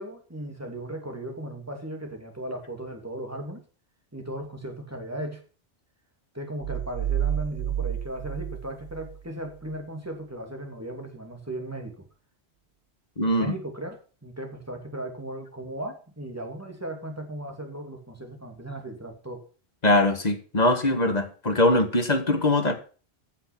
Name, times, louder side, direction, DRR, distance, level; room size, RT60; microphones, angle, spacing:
voice 1, 0.0-3.6 4.1-5.4 6.3-12.0 13.2-19.4, right 1 dB, 15° right, 3 dB, 2.7 m, -36 dB
sound 1, 6.6-9.2, right 10 dB, 90° right, 1.0 m, -30 dB
voice 2, 13.2-13.5 19.8-22.7, left 1 dB, 40° left, 8 dB, 1.8 m, -22 dB
14.5 x 6.2 x 5.9 m, 0.37 s
omnidirectional pair, 1.1 m